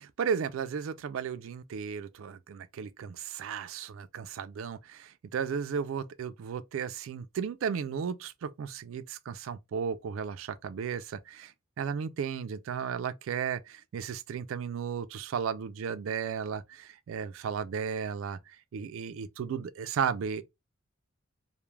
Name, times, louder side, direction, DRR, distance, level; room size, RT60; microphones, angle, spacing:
voice 1, 0.0-11.5 11.8-18.4 18.7-20.4, right 7 dB, 75° right, 0.3 m, -34 dB
2.2 x 2.1 x 3.1 m
head